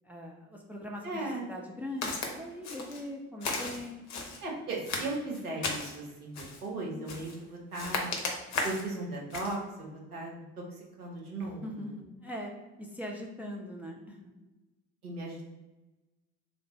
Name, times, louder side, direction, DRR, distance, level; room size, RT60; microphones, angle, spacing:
voice 1, 0.0-4.1 11.4-12.5 12.8-14.2, left 1 dB, 5° right, 0 dB, 0.5 m, -41 dB
voice 2, 1.0-1.5 4.4-6.3 6.6-8.1 8.6-10.3 10.7-11.8 15.0-15.5, right 2 dB, 75° right, -2 dB, 1.2 m, -37 dB
Walk footsteps, 2.0-2.3 2.6-3.0 3.4-4.4 4.8-6.0 6.3-6.7 7.1-7.4 7.7-8.9 9.3-9.6, left 3 dB, 40° left, 1.0 m, -35 dB
3.8 x 3.5 x 3.2 m, 1.1 s
figure-of-eight pair, 60°, 44 cm